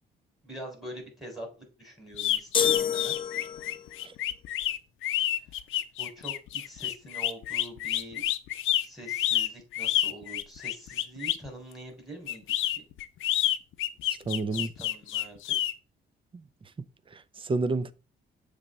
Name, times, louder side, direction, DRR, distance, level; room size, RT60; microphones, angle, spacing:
voice 1, 0.4-3.2 6.0-8.2 8.8-12.4 14.5-15.6, right 1 dB, ahead, 3.9 m, -44 dB
sound 1, 2.1-11.5 12.3-15.7, left 13 dB, 80° left, 0.6 m, -29 dB
sound 2, 2.5-3.9, left 7 dB, 25° left, 0.6 m, -28 dB
voice 2, 14.3-14.7 16.8-16.9 17.1-17.9, right 3 dB, 25° right, 0.6 m, -30 dB
7.2 x 3.4 x 5.2 m
cardioid pair, 90°, 20 cm